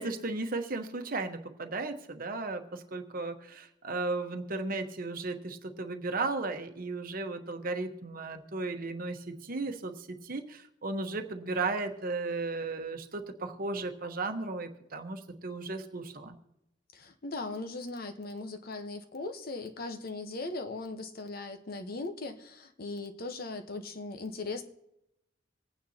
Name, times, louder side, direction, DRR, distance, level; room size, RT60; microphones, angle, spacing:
voice 1, 0.0-16.4, right 3 dB, 50° right, 6 dB, 1.1 m, -35 dB
voice 2, 16.9-24.6, left 3 dB, 55° left, 7 dB, 1.0 m, -39 dB
26.0 x 9.3 x 2.8 m, 0.86 s
head